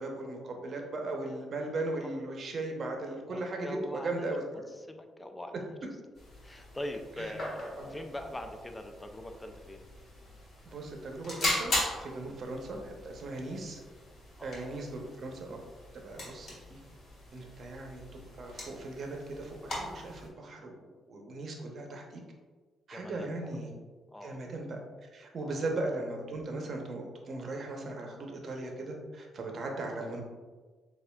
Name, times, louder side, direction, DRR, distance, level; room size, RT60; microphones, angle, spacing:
voice 1, 0.0-4.4 7.2-7.4 7.8-7.9 10.6-13.8 14.4-15.6 16.0-16.8 17.3-22.2 22.9-23.7 24.2-24.8 25.1-30.2, right 2 dB, 50° right, 2 dB, 0.7 m, -38 dB
voice 2, 3.3-4.6 4.9-5.7 6.4-9.9 12.3-12.4 14.4-14.8 22.9-23.4 24.1-24.5 25.4-25.6, left 1 dB, 15° left, 6 dB, 0.4 m, -42 dB
sound 1, 6.2-20.3, left 1 dB, 55° left, 1.5 m, -40 dB
6.6 x 2.5 x 2.3 m, 1.4 s
cardioid pair, 90°, 0 cm